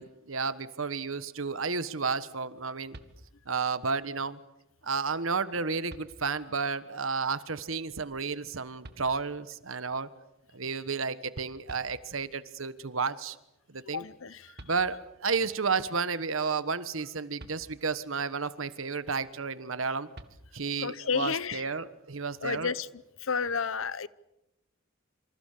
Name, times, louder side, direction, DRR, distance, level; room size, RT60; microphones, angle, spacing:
voice 1, 0.0-3.0 3.5-4.4 4.8-10.1 10.5-13.4 13.7-14.0 14.6-20.1 20.5-22.7, right 5 dB, 75° right, 13 dB, 1.4 m, -32 dB
sound 1, 2.9-3.7 5.2-5.3 5.9-6.6 8.8-9.6 11.3-11.4 11.7-12.5 14.2-14.3 14.6-15.3 17.4-18.2 20.1-20.9, right 1 dB, 50° right, 1.9 m, -51 dB
voice 2, 13.9-14.5 20.8-21.6 22.4-22.9 23.2-24.1, left 5 dB, 75° left, 18 dB, 0.9 m, -31 dB
27.5 x 26.0 x 6.8 m, 0.88 s
head